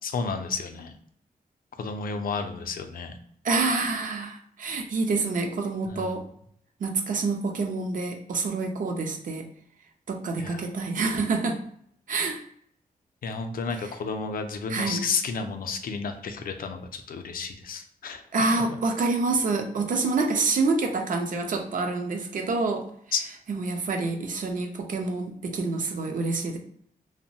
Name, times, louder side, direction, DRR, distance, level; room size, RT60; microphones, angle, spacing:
voice 1, 0.0-0.9 1.8-3.1 5.9-6.2 10.4-10.7 13.2-18.2 23.1-23.2, left 5 dB, 70° left, 6 dB, 0.4 m, -31 dB
voice 2, 3.4-6.3 6.8-9.5 10.1-11.6 12.1-12.4 13.8-13.9 14.7-15.0 18.3-22.9 23.5-26.6, right 3 dB, 60° right, 4 dB, 0.5 m, -27 dB
2.9 x 2.1 x 2.7 m, 0.67 s
wide cardioid pair, 170°, 15 cm